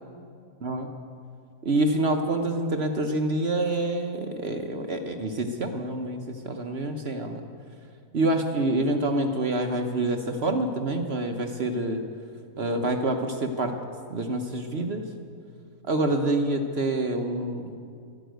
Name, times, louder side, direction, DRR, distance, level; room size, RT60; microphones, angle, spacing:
voice 1, 1.6-7.4 8.1-12.0 12.6-13.7 14.1-15.0 15.9-17.7, right 2 dB, 45° right, 5 dB, 1.0 m, -27 dB
13.0 x 11.5 x 9.2 m, 2.4 s
omnidirectional pair, 1.6 m